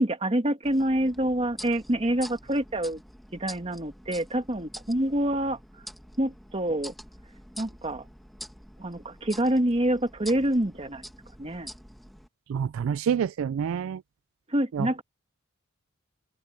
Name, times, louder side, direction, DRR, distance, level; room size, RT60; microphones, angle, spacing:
voice 1, 0.0-3.0 3.3-5.6 6.2-6.9 7.6-8.0 8.8-11.1 11.4-11.7 14.5-15.0, right 1 dB, 30° right, 1.7 m, -26 dB
sound 1, 0.6-12.3, equal, ahead, 1.9 m, -46 dB
voice 2, 12.5-14.0 14.7-15.0, right 7 dB, 90° right, 0.3 m, -28 dB
open air
head